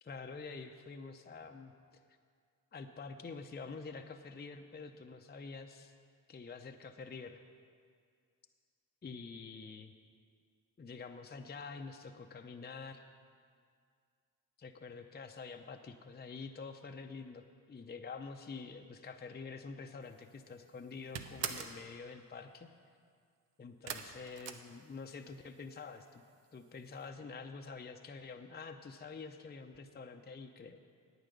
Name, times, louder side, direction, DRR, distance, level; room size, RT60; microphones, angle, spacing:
voice 1, 0.0-1.7 2.7-5.9 6.3-7.4 9.0-9.9 10.8-13.0 14.6-22.7 23.6-26.2 26.5-30.8, left 4 dB, 25° left, 5 dB, 0.7 m, -47 dB
sound 1, 20.1-20.5 20.8-21.8 23.9-25.3 25.6-26.3 26.6-26.7 27.0-27.1, right 8 dB, 80° right, 0.8 m, -42 dB
9.1 x 8.9 x 6.7 m, 2.1 s
supercardioid pair, 60°, 43 cm